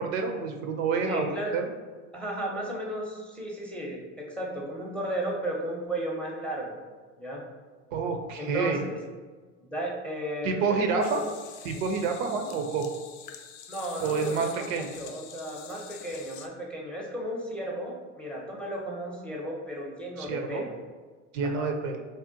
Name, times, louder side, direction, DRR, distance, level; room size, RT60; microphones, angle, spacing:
voice 1, 0.0-1.7 7.9-8.8 10.4-11.2 11.6-12.9 14.0-14.9 20.2-20.6 21.3-22.0, right 5 dB, 75° right, 5 dB, 0.6 m, -28 dB
voice 2, 1.0-1.6 2.1-6.8 7.2-7.4 8.4-9.0 9.6-11.2 13.7-20.8 21.4-21.7, right 1 dB, 5° left, -2 dB, 0.5 m, -34 dB
sound 1, 11.0-16.5, left 8 dB, 55° left, 0.4 m, -46 dB
2.6 x 2.1 x 3.7 m, 1.4 s
hypercardioid pair, 95°, 40 cm